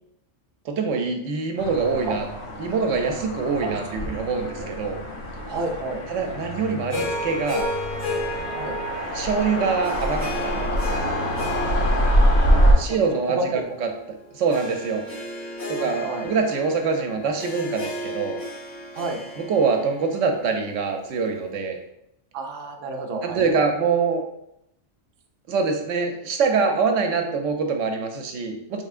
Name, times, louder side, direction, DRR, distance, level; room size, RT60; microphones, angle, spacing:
voice 1, 0.6-2.3 2.6-5.0 6.1-7.7 9.1-11.1 12.5-13.9 14.3-15.1 15.7-18.4 19.4-21.8 23.2-24.2 25.5-28.8, right 5 dB, 80° right, 4 dB, 1.0 m, -24 dB
sound 1, 1.6-12.7, equal, 65° left, 1.2 m, -25 dB
voice 2, 5.5-6.0 8.5-8.7 12.1-13.0 13.3-13.7 15.8-16.3 18.9-19.2 22.3-23.7, right 2 dB, 60° right, 2 dB, 0.7 m, -31 dB
Harp, 6.9-21.3, left 1 dB, 45° left, 1.4 m, -34 dB
4.4 x 3.3 x 2.4 m, 0.78 s
omnidirectional pair, 1.3 m